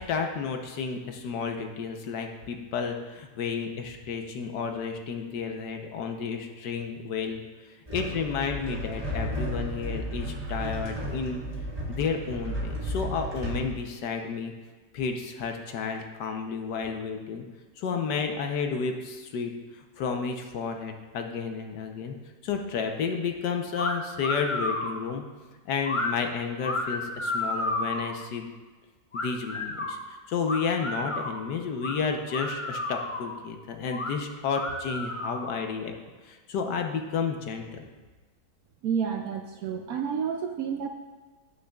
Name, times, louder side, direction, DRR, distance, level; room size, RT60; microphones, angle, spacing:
voice 1, 0.0-7.4 7.9-11.4 11.9-14.5 14.9-17.4 17.8-19.5 19.8-22.2 22.4-25.2 25.6-28.5 29.1-35.9 36.2-37.9, left 5 dB, 75° left, 4 dB, 1.4 m, -31 dB
sound 1, 7.9-13.7, equal, 20° right, 1.7 m, -33 dB
sound 2, 23.7-23.9 24.2-25.0 25.8-26.1 26.6-28.1 29.1-29.9 30.4-31.4 31.8-31.9 32.3-33.3 33.9-34.1 34.5-35.6, left 2 dB, 55° left, 0.3 m, -31 dB
voice 2, 38.8-40.9, right 7 dB, 70° right, 4 dB, 0.9 m, -30 dB
15.0 x 6.5 x 2.3 m, 1.3 s
omnidirectional pair, 1.9 m